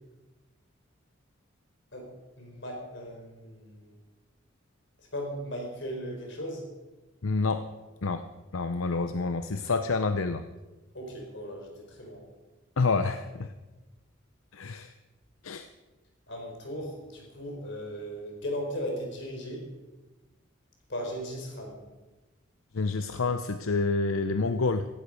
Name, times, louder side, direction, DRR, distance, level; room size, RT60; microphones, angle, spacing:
voice 1, 2.4-4.0 5.1-6.6 10.9-12.2 16.3-19.7 20.9-21.8, equal, 60° left, 2 dB, 4.5 m, -37 dB
voice 2, 7.2-7.7 8.0-8.3 8.5-10.4 12.8-13.5 14.5-14.9 15.4-15.7 22.7-24.9, left 3 dB, 85° left, 9 dB, 0.7 m, -28 dB
16.5 x 15.0 x 5.2 m, 1.2 s
head